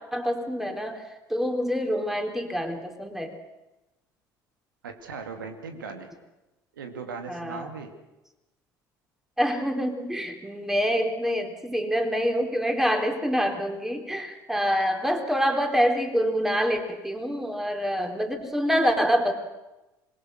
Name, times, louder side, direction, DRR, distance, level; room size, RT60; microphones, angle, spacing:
voice 1, 0.1-1.0 1.3-3.3 7.3-7.7 9.4-19.3, equal, 5° right, 4 dB, 4.0 m, -26 dB
voice 2, 4.8-6.1 6.7-7.9, right 5 dB, 85° right, 6 dB, 2.4 m, -38 dB
26.0 x 21.5 x 6.5 m, 1.0 s
hypercardioid pair, 65°, 11 cm